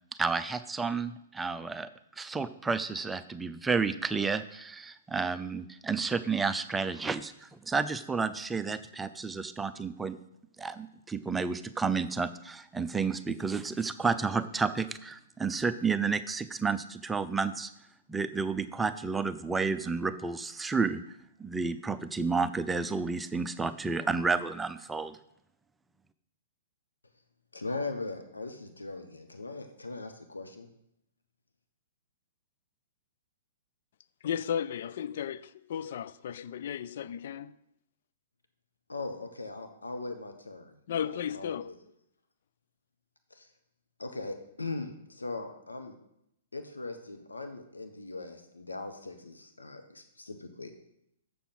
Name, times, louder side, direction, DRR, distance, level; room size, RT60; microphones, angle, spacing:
voice 1, 0.2-1.9 2.2-10.2 10.6-17.7 18.1-21.0 21.4-25.2, right 4 dB, 10° right, 0.5 m, -31 dB
voice 2, 27.5-30.7 38.9-41.7 43.3-43.5 44.0-45.9 46.5-50.7, left 3 dB, 90° left, 1.1 m, -40 dB
voice 3, 34.2-37.5 40.9-41.7, left 9 dB, 60° left, 0.4 m, -34 dB
7.0 x 6.9 x 6.0 m
figure-of-eight pair, 120°, 0 cm